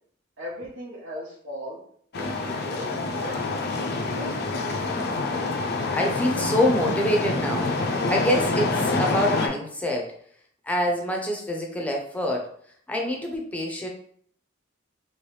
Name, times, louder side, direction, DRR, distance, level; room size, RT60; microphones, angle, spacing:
voice 1, 0.4-1.8 2.1-3.8 4.2-4.9, equal, 85° right, -7 dB, 1.0 m, -39 dB
sound 1, 2.1-9.5, left 3 dB, 55° left, 0.5 m, -26 dB
voice 2, 5.9-7.7 8.1-10.1 10.7-12.5 12.9-13.9, equal, 5° left, 1 dB, 0.5 m, -26 dB
3.1 x 3.1 x 3.2 m, 0.62 s
head